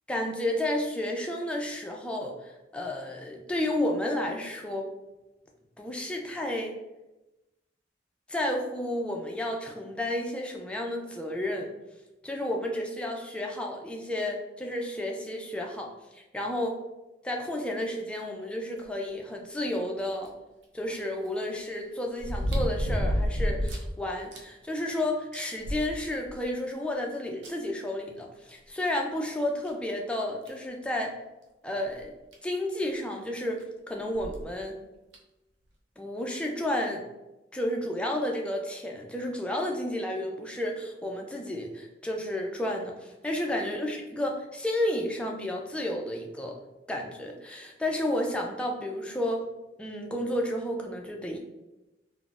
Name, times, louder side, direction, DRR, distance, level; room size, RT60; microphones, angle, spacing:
voice 1, 0.1-4.9 5.8-6.7 8.3-11.7 12.2-16.8 17.2-20.3 20.7-31.1 31.6-32.1 32.4-34.7 36.0-37.1 37.5-46.6 46.9-49.4 49.8-51.4, left 1 dB, 5° left, 0 dB, 0.3 m, -31 dB
sound 1, 20.3-20.4 22.2-23.9 24.3-24.4 24.9-25.0 25.3-26.4 27.4-27.5 29.0-29.1 29.6-29.7 30.5-30.7 32.0-32.1 32.3-32.4 34.1-34.4 35.1-35.2, equal, 85° right, 0.5 m, -29 dB
3.8 x 2.0 x 2.3 m, 1.0 s
head